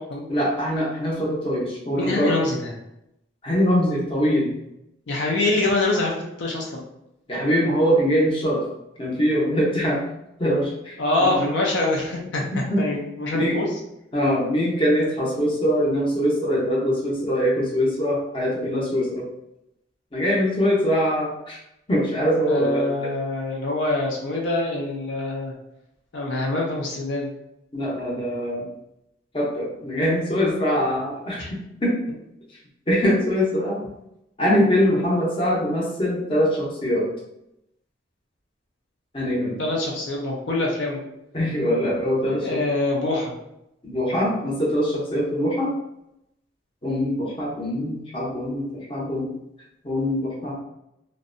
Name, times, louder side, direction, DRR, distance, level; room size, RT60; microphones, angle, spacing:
voice 1, 0.3-2.3 3.4-4.5 7.3-8.6 9.0-10.0 10.4-11.3 12.5-12.8 13.3-13.6 14.1-19.3 20.1-21.6 21.9-22.8 27.7-28.7 29.3-31.9 32.9-33.9 34.4-37.1 39.1-39.6 41.3-42.6 43.8-45.7 46.8-49.3 49.8-50.6, equal, 30° left, -5 dB, 0.6 m, -23 dB
voice 2, 1.9-2.7 5.1-6.8 11.0-12.4 12.8-13.7 22.4-25.6 26.1-27.3 31.4-31.5 39.6-41.0 42.3-43.3, left 2 dB, 70° left, -1 dB, 0.5 m, -25 dB
2.6 x 2.0 x 2.5 m, 0.84 s
head